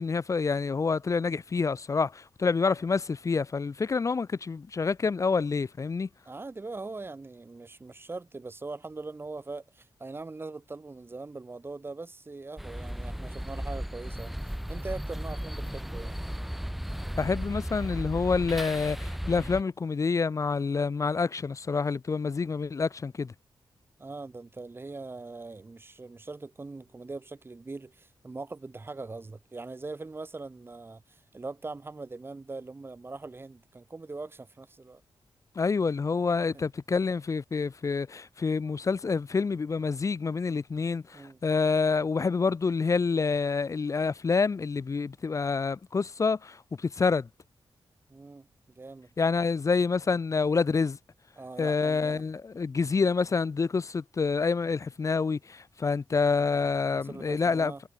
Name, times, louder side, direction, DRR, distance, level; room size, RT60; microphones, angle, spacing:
voice 1, 0.0-6.1 17.2-23.3 35.6-47.3 49.2-51.0 51.6-57.7, left 4 dB, 40° left, 0.9 m, -27 dB
voice 2, 6.3-16.3 24.0-35.0 36.5-36.6 41.1-41.4 48.1-49.1 51.4-52.2 56.9-57.8, right 3 dB, 25° right, 2.1 m, -41 dB
sound 1, 12.6-19.6, equal, ahead, 0.3 m, -35 dB
wide cardioid pair, 105°, 8 cm